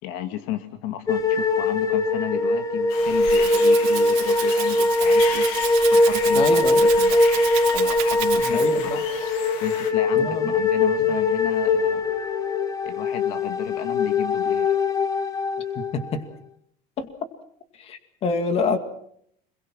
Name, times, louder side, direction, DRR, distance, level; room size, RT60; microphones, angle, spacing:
voice 1, 0.0-5.5 5.9-7.4 7.7-9.1 9.6-12.2 12.8-14.8, left 12 dB, 70° left, 9 dB, 2.0 m, -33 dB
sound 1, 1.1-16.2, left 2 dB, 20° left, 1.2 m, -21 dB
sound 2, 2.9-9.9, left 7 dB, 85° left, 4.0 m, -36 dB
Rattle (instrument), 3.0-8.9, right 17 dB, 75° right, 4.0 m, -33 dB
voice 2, 6.4-6.8 8.5-9.0 10.2-10.5 15.8-16.2 17.0-17.1 17.8-18.8, left 4 dB, 35° left, 9 dB, 2.2 m, -26 dB
26.5 x 22.0 x 6.1 m, 0.69 s
cardioid pair, 170°, 18 cm